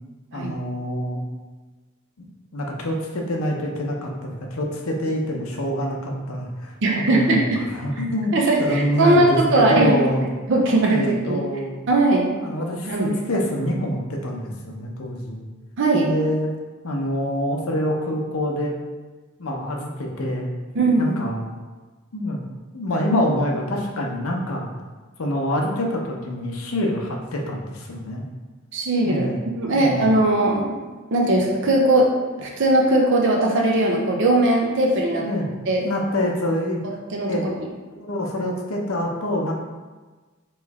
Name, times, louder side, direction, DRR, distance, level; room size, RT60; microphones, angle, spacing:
voice 1, 0.3-1.2 2.2-2.3 2.5-6.7 7.1-8.3 8.6-10.3 10.9-11.7 12.4-15.5 15.9-16.5 16.8-18.7 19.4-20.5 21.0-21.5 22.1-22.4 22.7-24.7 25.2-28.2 29.0-29.4 29.7-30.1 35.2-35.5 35.8-36.8 37.3-37.5 38.0-39.5, left 1 dB, 75° left, 0 dB, 0.7 m, -26 dB
voice 2, 6.8-7.4 8.3-10.0 10.5-11.4 11.9-12.3 12.9-13.1 15.8-16.1 20.8-21.2 28.7-29.3 29.6-30.7 31.1-32.1 32.4-35.2 35.7-35.8 37.1-37.3, right 2 dB, 60° right, 0 dB, 0.6 m, -19 dB
3.1 x 3.1 x 4.7 m, 1.3 s
head